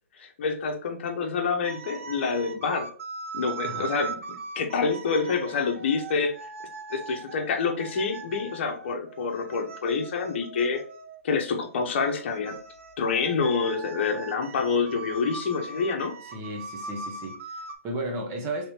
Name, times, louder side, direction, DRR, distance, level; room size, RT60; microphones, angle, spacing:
voice 1, 0.2-2.9 3.3-4.2 4.5-6.4 6.9-10.8 11.2-12.6 13.0-16.1, left 5 dB, 55° left, 0.8 m, -27 dB
sound 1, 1.6-11.2 12.0-17.8, right 4 dB, 65° right, 0.6 m, -40 dB
voice 2, 16.2-18.7, right 1 dB, 30° right, 1.0 m, -34 dB
3.3 x 3.0 x 3.1 m
hypercardioid pair, 135°, 8 cm